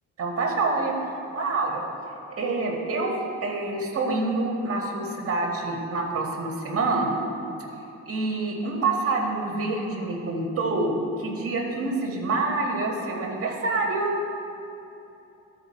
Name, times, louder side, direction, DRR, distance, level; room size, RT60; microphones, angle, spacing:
voice 1, 0.2-0.9 1.4-1.8 2.4-7.2 8.1-14.2, right 3 dB, 50° right, 0 dB, 1.8 m, -27 dB
13.0 x 4.7 x 4.4 m, 2.9 s
cardioid pair, 90°, 30 cm